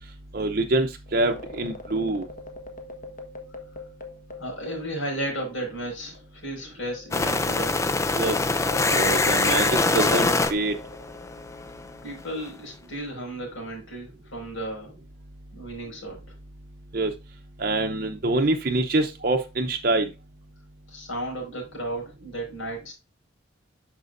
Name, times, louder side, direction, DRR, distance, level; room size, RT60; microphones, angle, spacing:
voice 1, 0.3-2.2 8.1-8.4 8.9-10.7 16.9-17.1 17.6-20.1, right 2 dB, 45° right, 0.7 m, -25 dB
sound 1, 1.1-5.9 6.1-6.3 6.9-11.7, left 3 dB, 40° left, 1.3 m, -42 dB
voice 2, 4.4-7.8 12.0-15.0 15.5-16.2 20.9-22.9, right 1 dB, 85° left, 5.2 m, -34 dB
sound 2, 7.1-12.0, left 3 dB, 15° left, 0.4 m, -24 dB
9.3 x 6.2 x 2.6 m
head